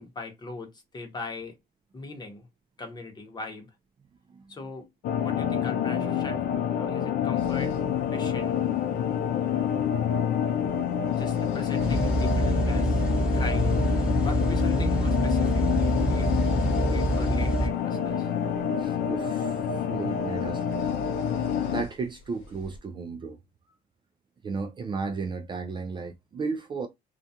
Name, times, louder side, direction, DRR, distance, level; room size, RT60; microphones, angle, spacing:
voice 1, 0.0-1.6 1.9-2.5 2.8-3.7 4.5-4.9 5.2-6.4 6.7-8.6 10.7-13.0 13.3-13.8 14.2-16.3 16.9-18.3, left 3 dB, 25° left, 0.9 m, -40 dB
sound 1, 5.0-21.8, left 8 dB, 65° left, 0.4 m, -27 dB
sound 2, 7.4-22.8, left 3 dB, 90° left, 0.8 m, -44 dB
sound 3, 11.8-17.7, right 1 dB, 5° right, 1.0 m, -26 dB
voice 2, 18.8-20.6 21.7-23.4 24.4-26.9, right 4 dB, 30° right, 0.3 m, -34 dB
2.3 x 2.2 x 2.7 m
cardioid pair, 110°, 17 cm